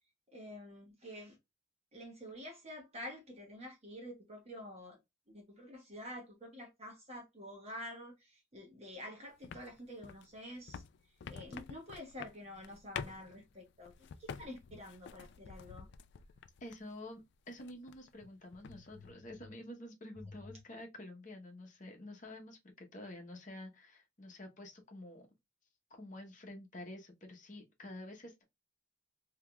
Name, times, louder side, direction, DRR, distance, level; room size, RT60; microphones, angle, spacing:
voice 1, 0.3-1.4 1.9-5.0 5.3-10.8 11.3-15.9 18.7-18.8 20.2-20.3, equal, 30° right, 1.2 m, -48 dB
sound 1, 9.4-17.0 17.3-18.2 18.5-19.1, left 6 dB, 55° left, 0.3 m, -48 dB
voice 2, 16.6-25.3 25.9-28.4, left 1 dB, 40° left, 0.9 m, -49 dB
3.5 x 2.8 x 2.2 m
head